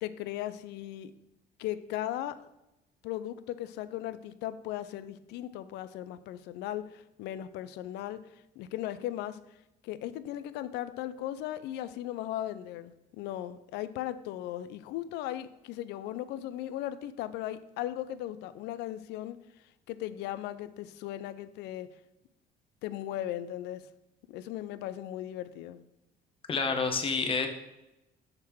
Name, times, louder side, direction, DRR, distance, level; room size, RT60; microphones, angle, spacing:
voice 1, 0.0-1.1 1.6-2.5 3.0-8.2 8.6-9.4 9.8-19.4 19.9-21.9 22.8-23.9 24.3-25.8, left 13 dB, 85° left, 14 dB, 0.4 m, -37 dB
voice 2, 26.5-27.5, left 4 dB, 30° left, 5 dB, 0.9 m, -28 dB
6.5 x 3.6 x 4.5 m, 0.91 s
cardioid pair, 110°, 17 cm